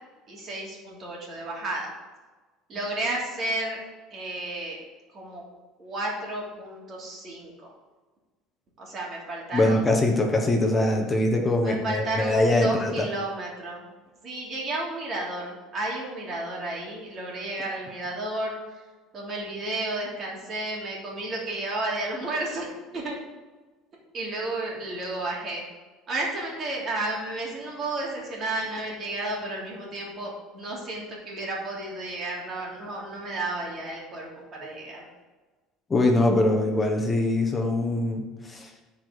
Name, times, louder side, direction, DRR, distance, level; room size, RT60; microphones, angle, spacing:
voice 1, 0.3-1.9 2.7-3.8 4.1-4.8 5.1-5.4 5.8-7.7 8.8-9.9 11.6-13.9 14.2-18.8 19.1-23.2 24.1-25.6 26.1-35.1, right 2 dB, 35° right, -3 dB, 3.0 m, -32 dB
voice 2, 9.5-12.9 35.9-38.7, left 1 dB, 15° left, 3 dB, 1.1 m, -23 dB
13.5 x 4.9 x 4.1 m, 1.3 s
cardioid pair, 140°, 0 cm